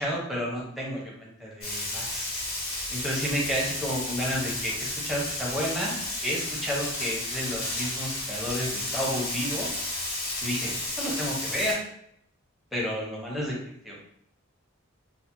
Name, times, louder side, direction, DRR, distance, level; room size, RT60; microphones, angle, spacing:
voice 1, 0.0-2.3 2.9-6.0 6.2-9.7 10.4-11.8 12.7-13.5 13.8-14.0, equal, ahead, -4 dB, 0.6 m, -31 dB
Frying (food), 1.6-11.7, left 2 dB, 75° left, 1.1 m, -32 dB
3.2 x 2.1 x 2.9 m, 0.71 s
head